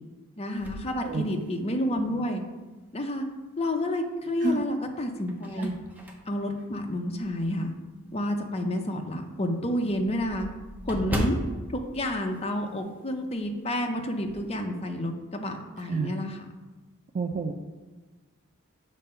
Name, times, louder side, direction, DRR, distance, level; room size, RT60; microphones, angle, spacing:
voice 1, 0.4-2.4 2.9-3.3 3.6-5.7 6.3-7.7 8.1-10.5 10.9-11.4 11.7-16.4, left 1 dB, 30° left, 3 dB, 0.6 m, -30 dB
sound 1, 0.6-1.9 2.4-2.5 4.0-4.5 5.0-7.6 8.1-8.2 8.6-8.7 9.0-9.1 9.3-13.1 13.3-13.6 13.9-14.5, equal, 10° right, 0.7 m, -37 dB
voice 2, 17.1-17.5, right 3 dB, 35° right, 3 dB, 0.4 m, -28 dB
7.2 x 3.3 x 5.5 m, 1.2 s
head